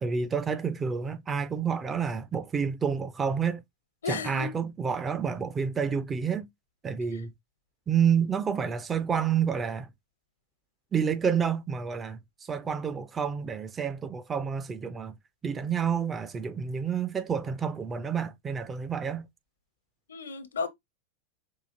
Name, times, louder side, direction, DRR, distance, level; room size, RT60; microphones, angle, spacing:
voice 1, 0.0-3.6 4.1-6.5 6.8-7.3 7.9-9.9 10.9-12.2 12.5-15.1 15.4-19.3, right 7 dB, 20° right, 0.5 m, -29 dB
voice 2, 4.0-4.5 20.1-20.7, left 5 dB, 70° left, 0.7 m, -33 dB
4.7 x 2.4 x 2.6 m
figure-of-eight pair, 90°, 0 cm